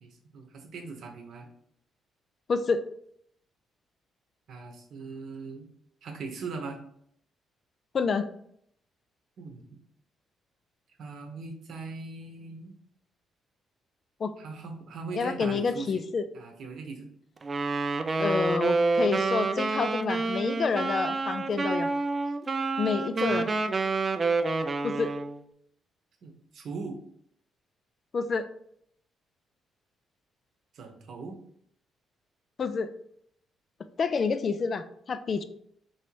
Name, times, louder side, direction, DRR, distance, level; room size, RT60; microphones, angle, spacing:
voice 1, 0.0-1.5 4.5-5.6 6.0-6.8 9.4-9.6 11.0-12.7 14.4-16.1 16.3-17.1 23.3-23.5 26.2-27.0 30.7-31.4, right 4 dB, 70° right, 3 dB, 0.8 m, -40 dB
voice 2, 2.5-2.8 7.9-8.3 14.2-14.3 15.1-16.3 18.2-21.9 22.8-23.5 24.8-25.1 28.1-28.5 32.6-32.9 34.0-35.4, left 5 dB, 45° left, 11 dB, 0.3 m, -28 dB
Wind instrument woodwind instrument, 17.4-25.4, right 3 dB, 35° right, 0.3 m, -28 dB
3.1 x 2.8 x 4.5 m, 0.68 s
cardioid pair, 90°, 0 cm